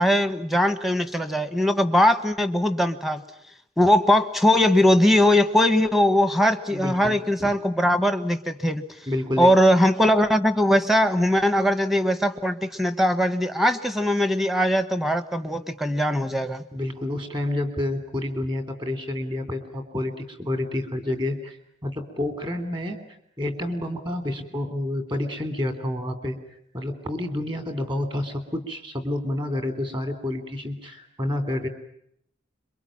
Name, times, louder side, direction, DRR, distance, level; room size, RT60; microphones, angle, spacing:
voice 1, 0.0-3.2 3.8-8.8 9.4-16.6, left 1 dB, ahead, 9 dB, 1.2 m, -20 dB
voice 2, 6.7-7.6 9.1-9.5 16.7-21.6 21.8-23.0 23.4-26.4 26.7-31.7, left 1 dB, 25° right, 8 dB, 3.3 m, -29 dB
26.5 x 23.5 x 8.8 m, 0.72 s
head